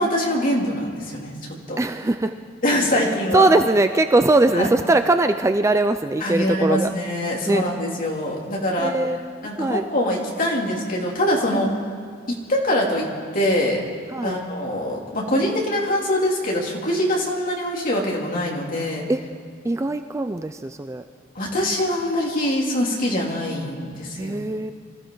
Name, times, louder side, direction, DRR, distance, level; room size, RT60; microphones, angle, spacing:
voice 1, 0.0-1.3 1.7-1.8 2.6-3.4 4.5-4.7 6.2-8.9 9.4-11.7 12.3-13.1 13.3-13.8 14.2-19.1 21.3-24.4, left 1 dB, 40° left, -2 dB, 2.9 m, -23 dB
voice 2, 1.8-2.3 3.0-6.9 7.5-7.6 8.8-9.8 11.5-11.7 14.1-14.4 19.1-19.2 19.6-21.0 24.2-24.7, right 2 dB, 15° right, 8 dB, 0.3 m, -21 dB
25.0 x 14.5 x 3.9 m, 2.1 s
head